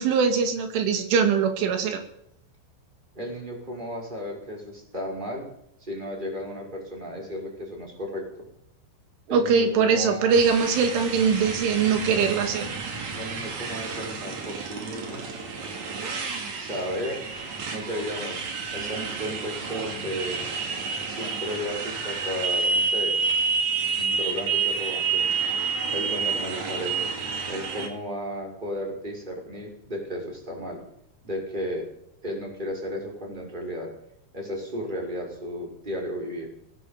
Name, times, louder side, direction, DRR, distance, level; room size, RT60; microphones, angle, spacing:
voice 1, 0.0-2.0 9.3-12.7, right 6 dB, 90° right, 6 dB, 4.8 m, -22 dB
voice 2, 3.1-5.5 5.8-8.5 9.3-10.4 13.1-15.3 16.6-17.2 17.7-18.4 18.7-20.4 21.1-23.2 24.0-25.3 25.9-27.1 27.5-30.8 31.2-31.9 32.2-33.9 34.3-36.5, equal, 10° right, 0 dB, 5.5 m, -34 dB
Motorcycle, 10.3-27.9, right 5 dB, 45° right, 3.4 m, -29 dB
21.0 x 17.0 x 7.5 m, 0.76 s
omnidirectional pair, 5.4 m